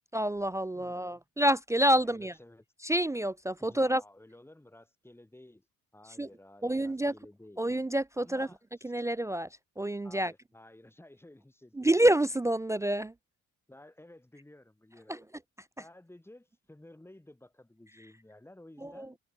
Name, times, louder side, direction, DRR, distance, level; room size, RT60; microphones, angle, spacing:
voice 1, 0.1-2.3 2.8-4.0 6.2-6.3 6.6-7.1 7.6-8.5 8.8-9.5 9.8-10.3 11.8-13.1 15.1-15.2 18.8-19.1, right 1 dB, 10° right, 0.3 m, -28 dB
voice 2, 0.7-1.2 1.9-2.6 3.6-5.7 5.9-7.6 8.2-8.9 10.0-11.9 13.7-15.3 15.8-19.2, left 1 dB, 10° left, 3.3 m, -54 dB
cardioid pair, 90°, 30 cm